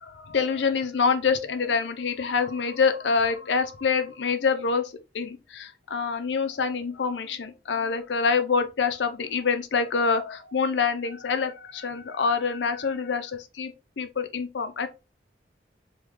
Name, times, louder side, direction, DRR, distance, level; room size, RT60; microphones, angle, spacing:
voice 1, 0.0-13.7 14.0-14.9, left 5 dB, 80° left, 0.6 m, -26 dB
3.5 x 2.3 x 3.2 m
head